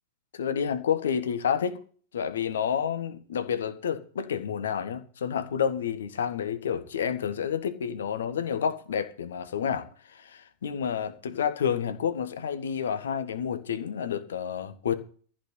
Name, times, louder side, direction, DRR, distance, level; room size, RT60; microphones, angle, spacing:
voice 1, 0.3-1.8 2.1-14.9, left 8 dB, 65° left, 1.7 m, -29 dB
14.5 x 6.3 x 8.4 m
figure-of-eight pair, 90°, 0 cm